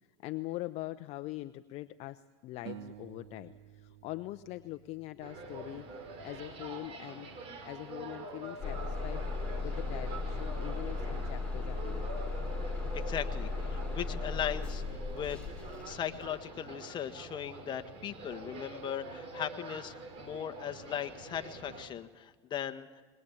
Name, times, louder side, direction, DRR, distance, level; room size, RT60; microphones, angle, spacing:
voice 1, 0.2-5.9 6.2-7.3 7.6-9.2 9.6-12.4 15.8-15.9 16.9-17.0, left 17 dB, 50° left, 11 dB, 0.8 m, -43 dB
sound 1, 2.7-5.9, right 12 dB, 75° right, 1.3 m, -51 dB
sound 2, 5.2-21.9, right 3 dB, 40° right, 4.9 m, -45 dB
Bus / Engine starting, 8.6-16.4, left 3 dB, 5° left, 4.2 m, -36 dB
voice 2, 12.9-23.0, left 10 dB, 30° left, 8 dB, 1.5 m, -38 dB
21.5 x 21.0 x 8.6 m, 1.4 s
supercardioid pair, 125°, 15 cm